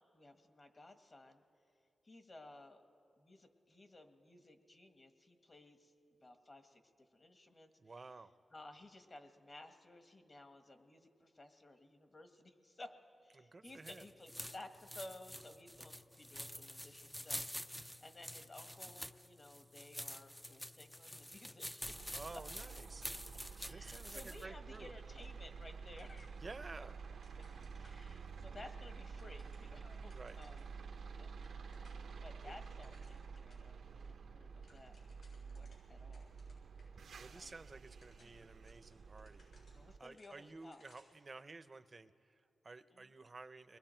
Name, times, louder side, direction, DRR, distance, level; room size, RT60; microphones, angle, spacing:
voice 1, 0.0-1.4 2.0-2.8 3.2-5.9 6.2-6.8 7.1-7.7 8.5-22.2 23.6-26.4 26.7-26.9 27.8-30.7 31.1-31.3 32.2-34.9 35.3-36.3 37.3-37.6 38.2-38.4 39.7-40.8 42.9-43.1, left 2 dB, 40° left, 6 dB, 1.5 m, -56 dB
voice 2, 7.8-8.3 13.3-14.1 22.1-23.1 23.6-24.9 26.4-27.1 30.1-30.4 32.4-32.6 37.1-39.5 40.0-43.8, right 3 dB, 40° right, 12 dB, 0.7 m, -53 dB
sound 1, 13.7-24.4, equal, 5° left, 0.4 m, -48 dB
sound 2, 21.8-40.0, right 5 dB, 85° right, 0.8 m, -50 dB
sound 3, 24.7-25.7 26.0-28.5 28.9-30.7 31.1-31.2 31.3-32.1 32.4-33.7 34.0-34.1 34.4-36.9 37.2-37.3 37.8-41.2, left 2 dB, 75° left, 7.3 m, -70 dB
29.5 x 21.5 x 4.5 m, 2.5 s
cardioid pair, 80°, 0 cm